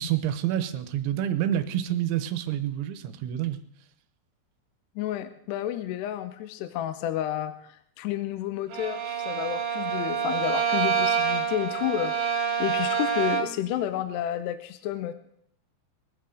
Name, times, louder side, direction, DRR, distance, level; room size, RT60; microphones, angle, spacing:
voice 1, 0.0-3.6, right 11 dB, 80° right, 10 dB, 3.2 m, -28 dB
voice 2, 5.0-12.1 12.6-15.1, left 12 dB, 80° left, 10 dB, 2.7 m, -31 dB
Bowed string instrument, 8.7-13.7, right 7 dB, 60° right, 2.9 m, -27 dB
22.5 x 8.1 x 6.4 m, 0.70 s
omnidirectional pair, 5.4 m